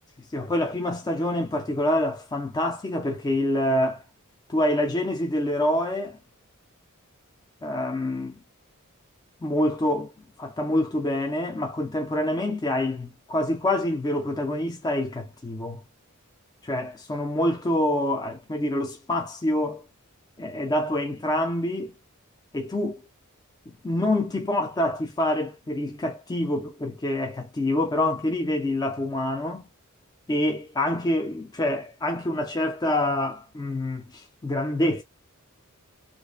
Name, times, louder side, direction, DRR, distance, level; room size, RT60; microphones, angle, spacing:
voice 1, 0.3-4.0 4.5-6.2 7.6-8.4 9.4-10.1 10.4-15.8 16.6-19.8 20.4-21.9 22.5-23.0 23.7-29.6 30.3-35.0, left 1 dB, 20° left, 0.3 m, -26 dB
2.4 x 2.2 x 2.3 m
head